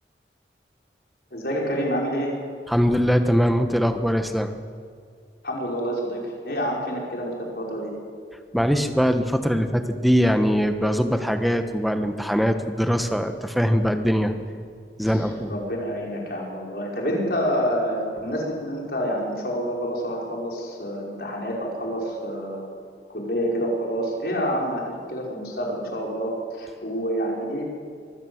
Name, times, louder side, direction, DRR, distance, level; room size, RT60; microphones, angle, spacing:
voice 1, 1.3-2.3 5.4-7.9 15.1-22.7 23.1-27.6, equal, 60° left, -2 dB, 5.6 m, -28 dB
voice 2, 2.7-4.5 8.5-14.3 15.0-15.5, equal, ahead, 7 dB, 1.2 m, -22 dB
24.0 x 15.0 x 8.0 m, 2.2 s
head